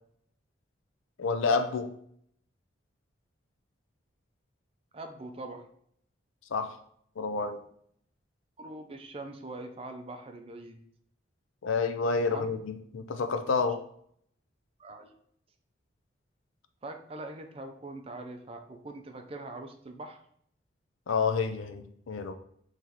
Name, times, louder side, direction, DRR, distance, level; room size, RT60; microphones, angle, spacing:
voice 1, 1.2-1.9 6.5-6.8 7.2-7.6 11.6-13.8 21.1-22.3, left 4 dB, 80° left, 9 dB, 0.5 m, -29 dB
voice 2, 4.9-5.7 8.6-10.8 12.3-12.5 14.8-15.1 16.8-20.2, right 2 dB, 30° right, 5 dB, 0.5 m, -42 dB
5.8 x 3.1 x 2.9 m, 0.67 s
head